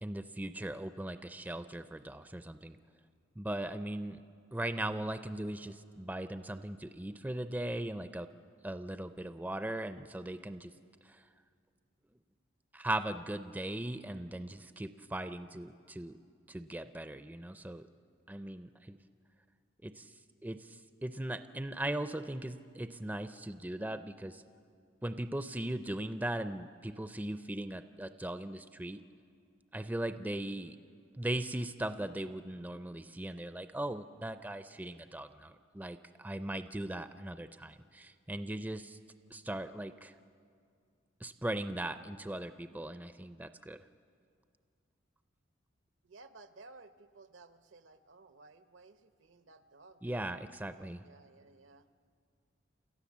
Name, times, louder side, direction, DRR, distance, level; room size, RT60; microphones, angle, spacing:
voice 1, 0.0-2.8 3.4-4.2 4.5-8.3 8.6-10.7 11.0-11.3 12.7-16.2 16.5-17.9 18.3-19.0 19.8-24.4 25.0-29.0 29.7-30.8 31.2-39.0 39.3-40.1 41.2-43.8 50.0-51.0, right 1 dB, 10° right, 10 dB, 0.4 m, -39 dB
voice 2, 46.0-51.9, right 3 dB, 75° right, 10 dB, 0.8 m, -57 dB
29.0 x 13.5 x 7.3 m, 2.3 s
head